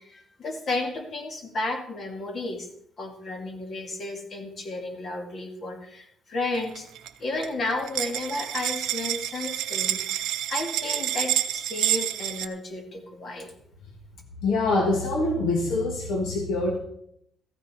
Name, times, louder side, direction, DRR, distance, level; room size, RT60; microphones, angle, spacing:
voice 1, 0.0-2.7 3.0-6.9 7.2-13.5, left 2 dB, 40° left, 4 dB, 2.1 m, -33 dB
sound 1, 6.6-7.1 7.4-12.5, right 12 dB, 85° right, 0.6 m, -28 dB
voice 2, 14.4-16.8, left 2 dB, 90° left, 0 dB, 2.1 m, -24 dB
13.5 x 9.6 x 4.3 m, 0.71 s
cardioid pair, 150°, 0 cm